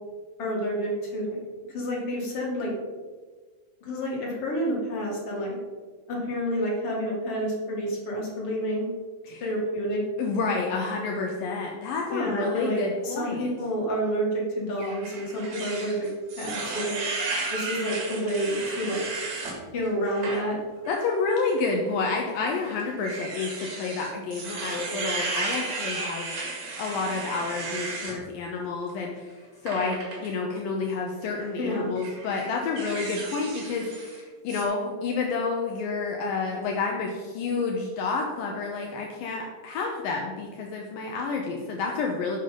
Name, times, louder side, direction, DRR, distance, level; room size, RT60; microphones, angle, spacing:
voice 1, 0.4-1.4 1.7-2.7 3.8-5.6 6.1-8.9 9.4-10.0 12.1-16.1 16.4-17.0 17.5-19.0 19.7-20.6 31.6-31.9, equal, 35° left, -3 dB, 2.9 m, -29 dB
voice 2, 10.2-13.5 20.9-26.5 26.8-29.3 29.6-42.4, left 4 dB, 75° left, 0 dB, 2.1 m, -29 dB
sound 1, 14.8-19.6 20.1-20.4 20.8-21.0 22.0-28.2 29.7-30.3 31.2-31.5 32.0-34.2 34.5-34.6, right 3 dB, 45° right, 2.8 m, -34 dB
11.0 x 7.4 x 5.2 m, 1.5 s
omnidirectional pair, 5.4 m